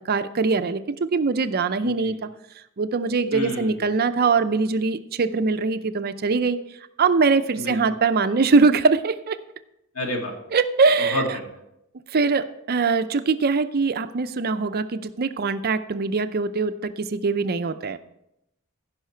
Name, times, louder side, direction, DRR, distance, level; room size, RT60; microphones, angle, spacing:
voice 1, 0.1-2.3 2.8-6.6 7.0-9.4 10.5-11.2 12.1-18.0, right 4 dB, 45° right, 11 dB, 0.5 m, -22 dB
voice 2, 1.8-2.1 3.3-3.8 7.6-7.8 9.9-10.3 11.0-11.2, left 1 dB, 80° left, 1 dB, 2.2 m, -29 dB
15.5 x 5.6 x 4.5 m, 0.83 s
head